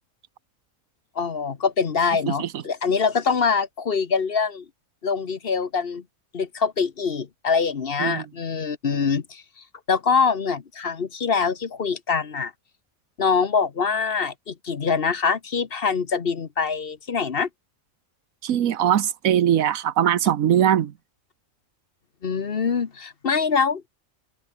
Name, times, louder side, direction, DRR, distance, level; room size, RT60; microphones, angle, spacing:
voice 1, 1.1-4.6 5.0-6.0 6.3-9.4 9.9-12.5 13.2-17.5 22.2-23.9, left 5 dB, 45° left, 1.3 m, -24 dB
voice 2, 18.4-20.9, right 10 dB, 85° right, 1.4 m, -21 dB
open air
omnidirectional pair, 1.4 m